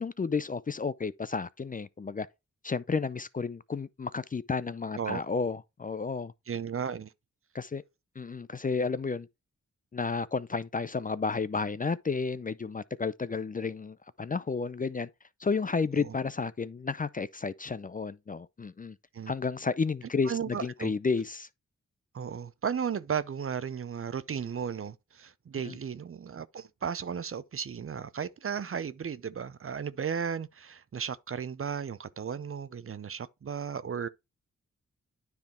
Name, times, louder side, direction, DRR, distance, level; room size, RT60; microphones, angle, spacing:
voice 1, 0.0-2.3 2.6-6.3 7.5-7.8 8.2-9.3 9.9-15.1 15.4-19.0 19.3-21.5 25.6-25.8, left 4 dB, 25° left, 0.5 m, -32 dB
voice 2, 6.5-7.1 16.0-16.1 19.1-19.3 20.3-20.9 22.1-34.1, right 7 dB, 45° right, 0.6 m, -35 dB
9.6 x 3.5 x 4.3 m
cardioid pair, 45°, 31 cm